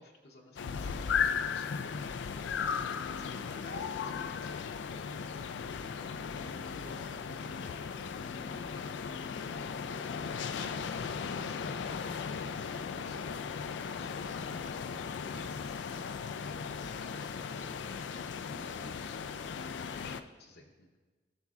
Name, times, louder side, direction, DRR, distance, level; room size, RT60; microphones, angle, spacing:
voice 1, 0.0-4.7 10.2-21.0, left 2 dB, 60° left, 0 dB, 0.9 m, -54 dB
sound 1, 0.6-20.2, left 6 dB, 85° left, 0.4 m, -37 dB
voice 2, 4.9-9.9, equal, 60° right, -7 dB, 1.8 m, -60 dB
15.0 x 6.9 x 2.4 m, 1.3 s
head